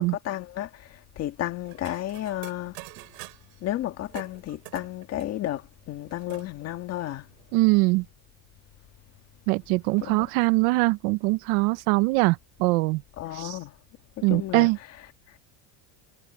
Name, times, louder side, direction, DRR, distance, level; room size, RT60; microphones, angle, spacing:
voice 1, 0.0-2.8 3.6-7.3 10.1-10.3 13.2-13.8 14.2-14.7 15.3-15.4, left 13 dB, 30° left, 1.7 m, -33 dB
sound 1, 1.6-3.6 4.1-6.5 6.9-7.0 7.2-7.8, right 27 dB, 80° right, 5.1 m, -47 dB
voice 2, 7.5-8.0 9.5-13.0 13.3-13.6 14.2-14.8, right 23 dB, 60° right, 0.9 m, -22 dB
cardioid pair, 175°, 48 cm